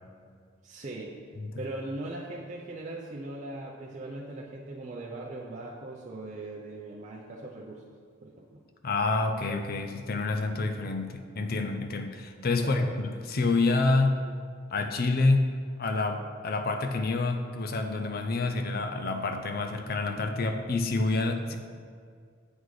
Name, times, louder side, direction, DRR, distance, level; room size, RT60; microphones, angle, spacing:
voice 1, 0.6-1.1 1.6-7.8 8.2-8.6 12.6-12.9, right 2 dB, 35° right, -4 dB, 0.6 m, -39 dB
voice 2, 8.8-14.2 14.7-15.5 15.8-21.6, left 3 dB, 45° left, 5 dB, 0.6 m, -28 dB
8.2 x 4.0 x 4.8 m, 2.1 s
head